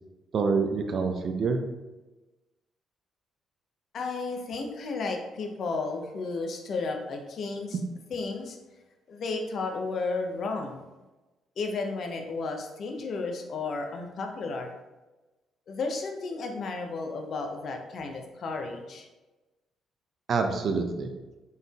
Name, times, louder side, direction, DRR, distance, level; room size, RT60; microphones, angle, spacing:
voice 1, 0.3-1.6 20.3-21.1, right 4 dB, 55° right, 6 dB, 0.5 m, -26 dB
voice 2, 3.9-7.8 8.1-8.6 9.1-10.8 11.6-14.7 15.7-19.1, left 3 dB, 60° left, 3 dB, 0.6 m, -33 dB
4.1 x 3.7 x 2.3 m, 1.1 s
hypercardioid pair, 50°, 0 cm